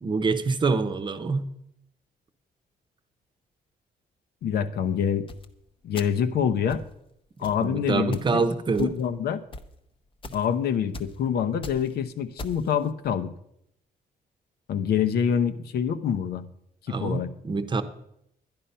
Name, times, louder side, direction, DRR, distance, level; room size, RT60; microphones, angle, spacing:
voice 1, 0.0-1.5 7.6-8.9 16.9-17.8, right 4 dB, 30° right, 10 dB, 0.8 m, -26 dB
voice 2, 4.4-5.3 5.8-6.8 7.4-8.4 8.8-9.4 10.3-13.3 14.7-16.4 16.9-17.3, left 8 dB, 85° left, 10 dB, 0.9 m, -26 dB
sound 1, 5.3-5.4 5.9-6.3 6.7-6.9 7.4-7.6 8.1-8.3 8.7-9.1 9.5-9.6 10.2-10.5 10.9-11.1 11.5-11.9 12.4-12.7, left 2 dB, 35° left, 0.8 m, -39 dB
11.5 x 10.5 x 5.6 m, 0.76 s
cardioid pair, 165°, 16 cm